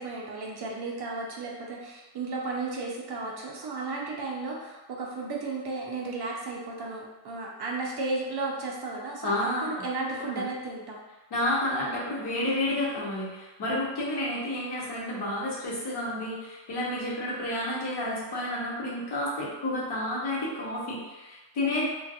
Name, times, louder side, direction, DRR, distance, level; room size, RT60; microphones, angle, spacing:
voice 1, 0.0-9.3 9.6-11.0, right 3 dB, 55° right, -2 dB, 0.5 m, -34 dB
voice 2, 9.2-10.4 11.3-21.9, left 1 dB, 55° left, -6 dB, 0.8 m, -30 dB
2.4 x 2.2 x 2.7 m, 1.1 s
wide cardioid pair, 165°, 48 cm